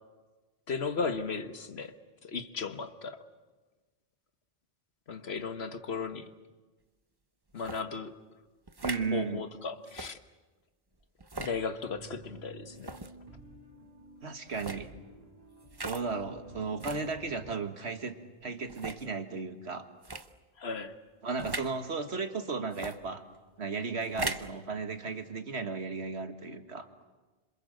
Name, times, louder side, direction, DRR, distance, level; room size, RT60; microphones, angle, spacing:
voice 1, 0.7-1.9 2.2-3.2 5.1-6.3 7.5-8.1 9.1-10.2 11.4-12.9 20.6-20.9, left 5 dB, 75° left, 9 dB, 1.6 m, -35 dB
sound 1, 7.6-7.8 8.7-9.1 9.9-10.1 11.2-11.6 12.8-13.1 14.5-14.8 15.7-16.0 16.8-17.1 17.8-17.9 18.7-19.0 20.0-20.3 21.4-21.7 22.7-23.0 24.0-24.5, right 2 dB, 25° right, 0.9 m, -38 dB
voice 2, 8.8-9.5 14.2-14.9 15.8-18.2 18.4-19.9 21.2-23.2 23.6-26.9, right 4 dB, 90° right, 8 dB, 2.0 m, -35 dB
sound 2, 11.9-17.5, right 2 dB, 40° right, 2.8 m, -52 dB
27.0 x 26.5 x 7.8 m, 1.2 s
omnidirectional pair, 1.1 m